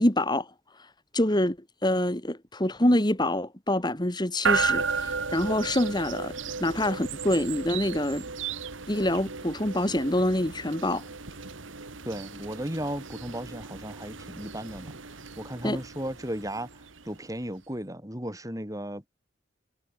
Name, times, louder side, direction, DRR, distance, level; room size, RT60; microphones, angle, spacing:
voice 1, 0.0-1.6 1.8-6.3 6.6-8.2 8.9-11.0 15.6-15.8, left 1 dB, 20° left, 2.4 m, -26 dB
sound 1, 4.4-17.4, right 5 dB, 90° right, 2.2 m, -34 dB
voice 2, 12.0-15.0 15.4-19.1, right 1 dB, 15° right, 5.6 m, -35 dB
head